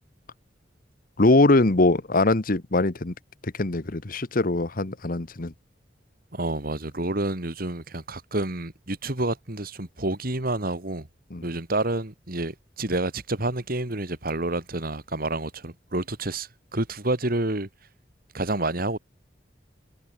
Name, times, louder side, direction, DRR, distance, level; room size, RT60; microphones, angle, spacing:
voice 1, 1.2-3.1 3.4-5.5 11.3-11.5, left 2 dB, 50° left, 1.2 m, -22 dB
voice 2, 6.3-11.1 11.4-17.7 18.3-19.0, right 2 dB, 50° right, 2.7 m, -29 dB
head